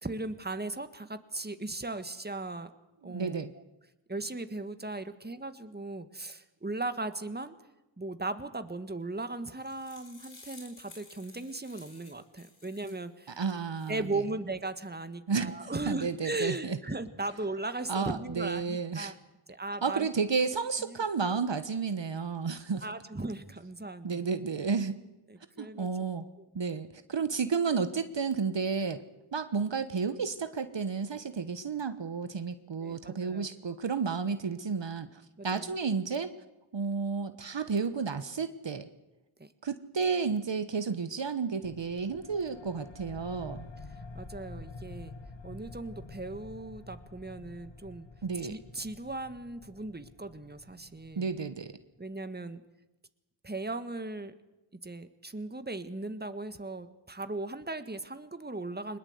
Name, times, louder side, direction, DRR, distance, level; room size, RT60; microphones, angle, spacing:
voice 1, 0.0-2.7 3.0-3.5 4.1-7.6 8.0-13.4 13.9-19.1 19.5-20.1 20.8-21.0 22.8-24.3 25.3-25.9 26.4-26.5 32.8-33.5 35.4-35.7 39.4-39.5 44.1-45.1 45.4-48.1 48.5-51.3 52.0-52.6 53.4-54.3 54.8-59.0, right 2 dB, 20° right, 10 dB, 1.7 m, -37 dB
voice 2, 3.0-3.5 13.4-14.2 15.3-15.5 15.9-16.8 17.9-19.1 19.8-22.9 24.0-25.0 25.6-26.2 26.5-29.0 29.3-36.3 36.7-38.9 39.6-43.6 48.2-48.6 51.2-51.7, right 5 dB, 60° right, 11 dB, 1.3 m, -32 dB
sound 1, 9.3-13.1 13.5-14.1, left 3 dB, 70° left, 5.6 m, -54 dB
sound 2, 41.6-51.8, left 3 dB, 55° left, 2.3 m, -48 dB
22.0 x 20.5 x 8.2 m, 0.97 s
cardioid pair, 40°, 50 cm